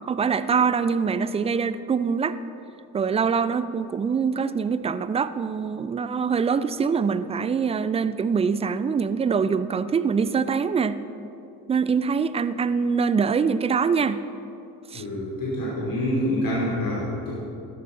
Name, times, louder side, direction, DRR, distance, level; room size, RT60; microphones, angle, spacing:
voice 1, 0.1-2.4 2.9-11.0 11.7-14.2 14.9-15.0, right 6 dB, 15° right, 14 dB, 0.3 m, -24 dB
voice 2, 14.9-17.4, left 1 dB, 45° left, -5 dB, 3.0 m, -26 dB
14.5 x 12.0 x 4.0 m, 2.8 s
figure-of-eight pair, 55°, 46 cm